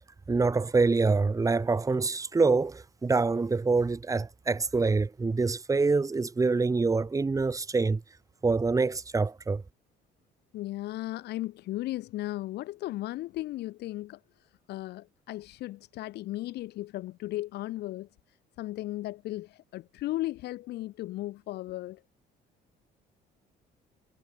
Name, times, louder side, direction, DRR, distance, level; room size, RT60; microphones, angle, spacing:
voice 1, 0.3-8.0 8.4-9.6, right 4 dB, 20° right, 2.1 m, -25 dB
voice 2, 10.5-14.2 14.7-18.1 18.6-22.0, left 16 dB, 80° left, 3.9 m, -36 dB
cardioid pair, 110°, 17 cm